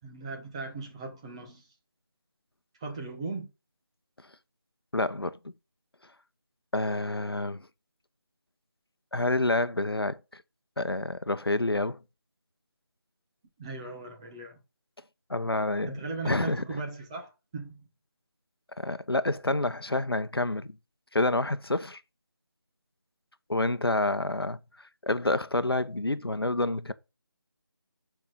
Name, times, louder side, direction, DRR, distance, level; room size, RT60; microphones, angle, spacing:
voice 1, 0.0-1.7 2.8-3.5 13.6-14.6 15.9-17.8, right 3 dB, 15° right, 1.3 m, -38 dB
voice 2, 4.9-5.4 6.7-7.7 9.1-10.4 10.8-12.0 15.3-16.0 16.2-16.6 18.8-20.8 21.1-22.0 23.5-24.6 25.0-26.9, left 2 dB, 85° left, 1.0 m, -28 dB
8.6 x 5.9 x 4.0 m
figure-of-eight pair, 165°, 12 cm